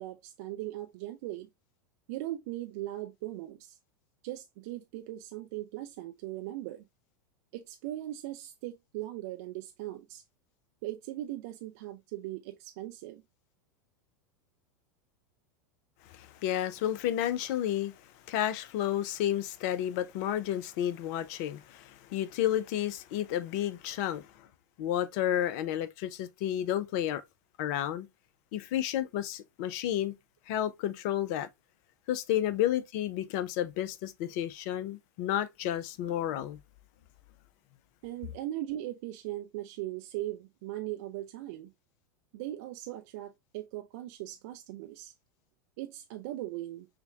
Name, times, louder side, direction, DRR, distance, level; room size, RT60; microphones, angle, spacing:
voice 1, 0.0-1.5 2.1-3.8 4.2-6.8 7.5-10.2 10.8-13.2 38.0-41.7 42.3-45.1 45.8-46.9, right 15 dB, 55° right, 0.3 m, -39 dB
voice 2, 16.1-17.9 18.3-24.5 24.8-27.2 27.6-28.1 28.5-30.1 30.5-31.5 32.1-36.6, left 11 dB, 50° left, 0.5 m, -31 dB
5.7 x 2.2 x 2.2 m
figure-of-eight pair, 85°, 10 cm